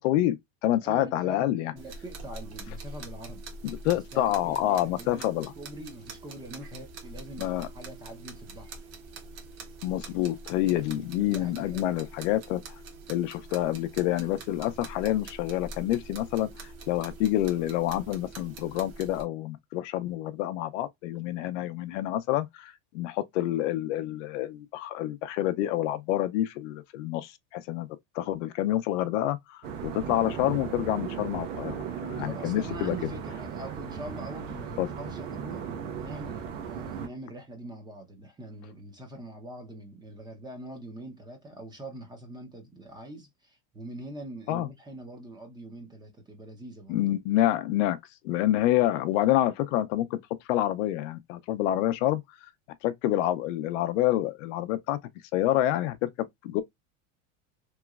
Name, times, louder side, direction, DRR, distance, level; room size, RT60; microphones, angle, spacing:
voice 1, 0.0-1.7 3.6-5.5 7.4-7.7 9.8-12.6 13.1-16.5 16.9-27.9 28.1-31.8 32.0-33.0 34.8-34.9 44.5-44.7 46.9-48.0 48.2-50.2 50.5-52.2 52.8-55.0 55.3-56.6, left 14 dB, 65° left, 0.5 m, -27 dB
voice 2, 0.8-3.4 3.9-8.8 10.6-11.9 32.2-35.7 36.0-47.0, right 1 dB, 10° right, 0.5 m, -43 dB
sound 1, 1.8-19.2, right 3 dB, 50° right, 1.0 m, -44 dB
sound 2, 29.6-37.1, right 7 dB, 75° right, 1.0 m, -36 dB
3.1 x 2.9 x 2.3 m
supercardioid pair, 150°, 40 cm